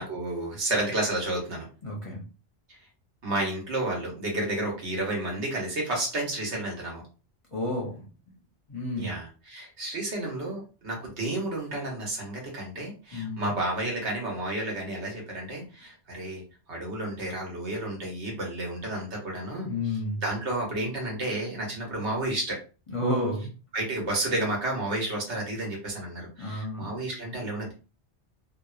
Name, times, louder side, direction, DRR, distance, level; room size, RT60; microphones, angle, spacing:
voice 1, 0.0-1.7 2.7-2.8 3.2-7.0 9.0-16.4 16.7-22.6 23.7-27.7, right 1 dB, 75° right, -1 dB, 1.3 m, -31 dB
voice 2, 1.8-2.2 7.5-8.0 8.7-9.1 13.1-13.5 19.6-20.2 22.9-23.5 26.4-26.9, left 1 dB, 35° left, -3 dB, 0.6 m, -31 dB
2.9 x 2.1 x 2.3 m, 0.34 s
omnidirectional pair, 1.2 m